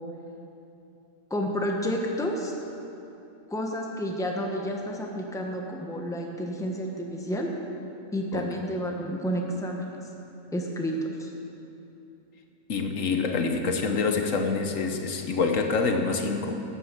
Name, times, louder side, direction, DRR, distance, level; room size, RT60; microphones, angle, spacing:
voice 1, 1.3-2.6 3.5-7.5 8.1-10.0 10.5-11.3, equal, 5° left, 0 dB, 1.1 m, -30 dB
voice 2, 12.7-16.6, left 4 dB, 70° left, 5 dB, 1.3 m, -26 dB
11.5 x 9.0 x 7.6 m, 2.8 s
omnidirectional pair, 1.4 m